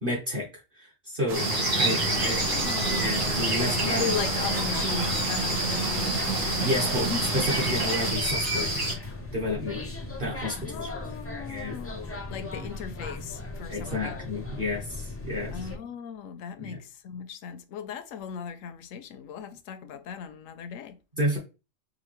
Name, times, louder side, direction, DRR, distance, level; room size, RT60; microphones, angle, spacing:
voice 1, 0.0-0.5 0.7-1.5 1.8-2.4 2.9-4.1 6.4-8.8 9.3-9.8 10.2-10.9 11.5-11.8 12.5-12.7 13.7-15.6 16.6-16.8 21.2-21.4, left 1 dB, 40° right, 1.1 m, -30 dB
sound 1, 1.3-8.9, right 1 dB, 60° right, 2.4 m, -28 dB
sound 2, 1.3-8.1, right 5 dB, 80° right, 1.3 m, -32 dB
sound 3, 2.0-15.8, left 2 dB, 20° left, 0.4 m, -38 dB
voice 2, 2.1-3.1 3.8-6.2 10.5-14.3 15.5-21.0, left 7 dB, 85° left, 1.0 m, -37 dB
5.0 x 2.6 x 2.9 m
omnidirectional pair, 1.3 m